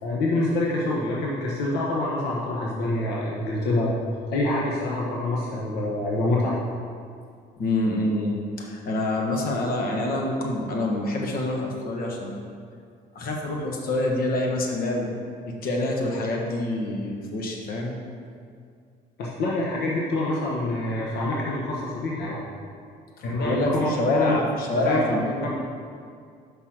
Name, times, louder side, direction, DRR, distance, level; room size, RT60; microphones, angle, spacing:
voice 1, 0.0-3.9 4.3-6.6 19.2-22.5 23.2-24.4 24.7-25.5, left 2 dB, 75° left, -4 dB, 1.1 m, -26 dB
voice 2, 7.6-12.3 13.1-15.1 15.5-18.0 23.2-25.5, left 1 dB, 60° left, 0 dB, 1.3 m, -26 dB
5.8 x 5.3 x 6.4 m, 2.2 s
cardioid pair, 110°, 17 cm